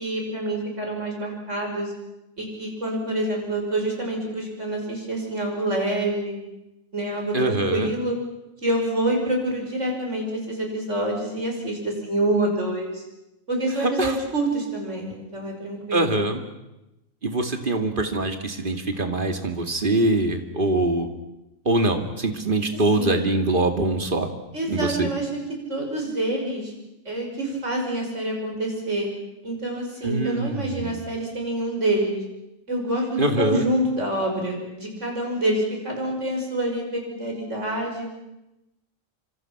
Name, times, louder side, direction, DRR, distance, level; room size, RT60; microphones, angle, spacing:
voice 1, 0.0-1.9 2.4-6.4 6.9-8.2 8.6-13.0 13.5-16.2 23.0-23.2 24.5-25.4 25.7-26.7 27.0-29.1 29.4-32.2 32.7-38.1, right 1 dB, 60° right, 1 dB, 6.4 m, -27 dB
voice 2, 7.3-7.9 13.8-14.2 15.9-16.4 17.2-21.1 21.7-24.3 24.7-25.1 30.0-31.0 33.2-33.6, right 2 dB, 40° right, 5 dB, 2.4 m, -23 dB
27.0 x 26.0 x 6.0 m, 0.94 s
omnidirectional pair, 1.4 m